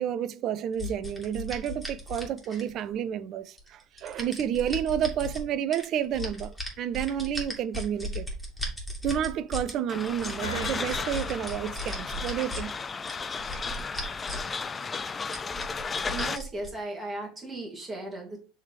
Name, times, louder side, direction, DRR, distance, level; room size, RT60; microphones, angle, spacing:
voice 1, 0.0-8.3 9.0-12.7, right 9 dB, 45° right, 0.4 m, -30 dB
sound 1, 0.8-2.9 3.6-5.4 5.7-9.7 10.1-12.6 13.0-14.5 14.8-14.9 15.3-16.7, left 1 dB, ahead, 2.3 m, -36 dB
sound 2, 9.9-16.4, left 5 dB, 25° left, 0.4 m, -34 dB
sound 3, 10.4-12.3, right 1 dB, 90° left, 1.4 m, -40 dB
voice 2, 16.1-18.4, right 2 dB, 25° right, 2.3 m, -36 dB
6.3 x 3.4 x 5.0 m
figure-of-eight pair, 70°, 0 cm